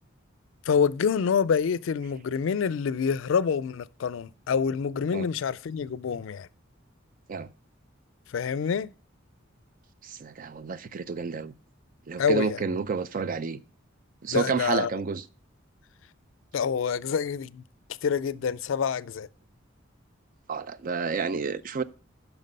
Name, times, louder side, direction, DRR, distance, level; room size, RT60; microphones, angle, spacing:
voice 1, 0.7-6.5 8.3-8.9 12.2-12.6 14.3-14.9 16.5-17.6 18.0-19.3, left 6 dB, 70° left, 0.4 m, -27 dB
voice 2, 10.0-11.5 12.1-13.6 14.2-15.2 20.5-21.8, right 5 dB, 45° right, 0.4 m, -30 dB
9.1 x 5.9 x 5.3 m
head